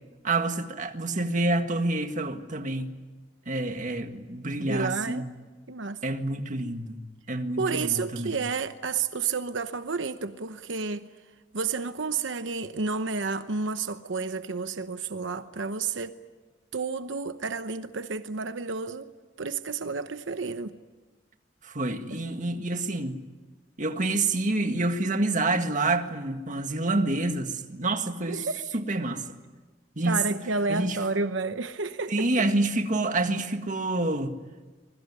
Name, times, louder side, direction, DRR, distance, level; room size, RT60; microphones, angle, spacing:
voice 1, 0.2-2.9 3.5-5.2 6.0-7.0 7.3-8.3 21.6-23.2 23.8-28.5 28.9-29.2 30.0-30.4 30.7-31.0 32.1-34.3, right 2 dB, 45° right, 1.8 m, -27 dB
voice 2, 4.6-5.2 5.7-6.0 7.6-11.1 11.5-16.1 16.7-19.1 19.4-20.7 22.1-22.2 28.3-28.6 30.0-32.3, right 4 dB, 90° right, 0.9 m, -31 dB
26.0 x 22.0 x 9.7 m
head